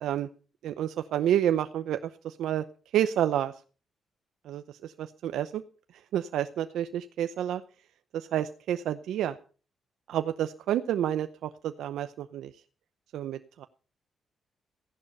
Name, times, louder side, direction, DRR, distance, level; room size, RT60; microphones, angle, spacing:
voice 1, 0.6-2.0 2.2-2.6 2.9-3.5 4.4-5.6 6.1-7.6 8.1-9.4 10.1-12.5 13.1-13.7, right 11 dB, 85° right, 10 dB, 0.7 m, -29 dB
15.5 x 11.0 x 5.5 m, 0.38 s
cardioid pair, 85°, 0 cm